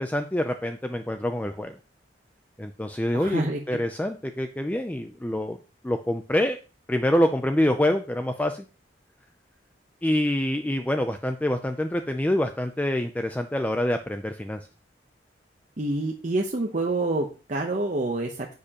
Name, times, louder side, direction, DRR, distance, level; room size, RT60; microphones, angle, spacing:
voice 1, 0.0-1.8 2.6-5.6 5.8-6.6 6.9-8.6 10.0-14.7, left 1 dB, 10° left, 7 dB, 0.4 m, -26 dB
voice 2, 3.1-3.6 15.8-18.5, right 2 dB, 40° right, 1 dB, 0.8 m, -27 dB
9.9 x 6.7 x 2.9 m, 0.34 s
head